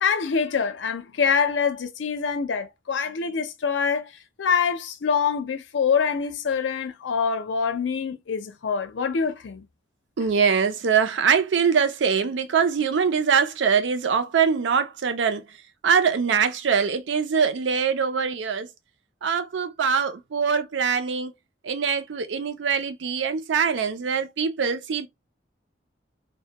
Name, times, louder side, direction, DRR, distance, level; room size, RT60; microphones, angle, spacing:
voice 1, 0.0-4.1 4.4-9.7, left 6 dB, 85° left, 0.5 m, -25 dB
voice 2, 10.2-15.4 15.8-18.7 19.2-21.3 21.6-25.1, right 6 dB, 85° right, 0.4 m, -23 dB
2.1 x 2.1 x 2.8 m
head